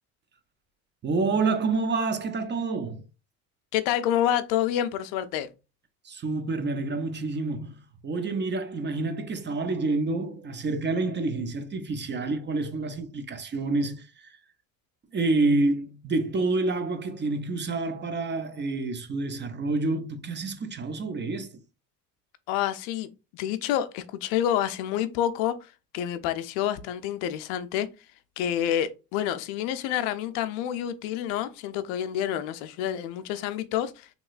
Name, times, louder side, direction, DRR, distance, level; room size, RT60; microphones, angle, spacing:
voice 1, 1.0-3.0 6.0-7.8 8.0-14.3 15.1-21.6, right 3 dB, 25° right, 0.5 m, -28 dB
voice 2, 3.7-5.5 22.5-27.9 28.4-34.1, left 11 dB, 80° left, 0.5 m, -28 dB
3.0 x 2.9 x 2.4 m
supercardioid pair, 80°, 41 cm